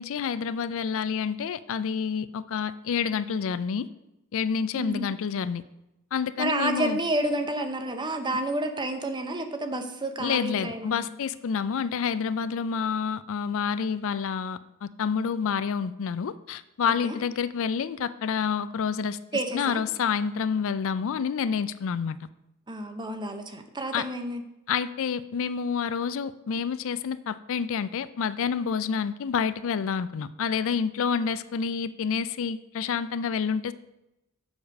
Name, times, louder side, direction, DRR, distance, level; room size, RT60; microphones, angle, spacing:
voice 1, 0.0-3.9 4.3-5.6 6.1-7.0 10.2-19.2 19.5-22.2 23.9-24.1 24.7-33.7, left 6 dB, 65° left, 15 dB, 0.4 m, -28 dB
voice 2, 4.7-5.1 6.4-11.1 17.0-17.2 19.3-19.8 22.7-24.4, right 1 dB, 20° right, 7 dB, 0.8 m, -30 dB
7.1 x 4.9 x 6.4 m, 0.92 s
head